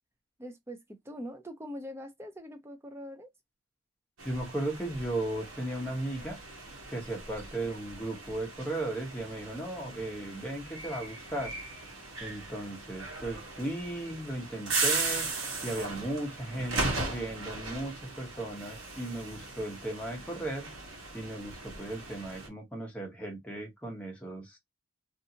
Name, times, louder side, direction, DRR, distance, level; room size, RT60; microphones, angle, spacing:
voice 1, 0.4-3.3, equal, 10° right, 0.4 m, -43 dB
voice 2, 4.2-6.4 6.9-11.5 12.2-15.3 15.6-20.7 21.1-24.6, right 1 dB, 5° left, 0.9 m, -36 dB
sound 1, 4.2-22.5, right 3 dB, 75° right, 1.1 m, -38 dB
2.6 x 2.5 x 2.7 m
head